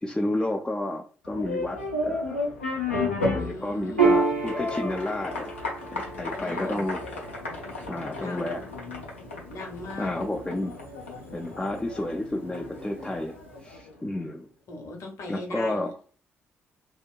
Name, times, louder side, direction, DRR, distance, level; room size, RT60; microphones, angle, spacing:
voice 1, 0.0-2.4 3.3-5.5 5.9-7.0 7.9-8.6 10.0-10.7 11.3-14.5 15.3-15.9, left 1 dB, 10° left, 1 dB, 0.4 m, -31 dB
sound 1, 1.2-14.0, left 2 dB, 85° left, 0.4 m, -34 dB
voice 2, 3.4-4.2 6.3-6.8 8.2-8.6 9.5-10.1 14.7-15.9, left 2 dB, 55° left, 2 dB, 0.8 m, -39 dB
Piano, 4.0-10.9, right 4 dB, 85° right, 0.4 m, -30 dB
2.8 x 2.1 x 2.3 m, 0.40 s
figure-of-eight pair, 40°, 6 cm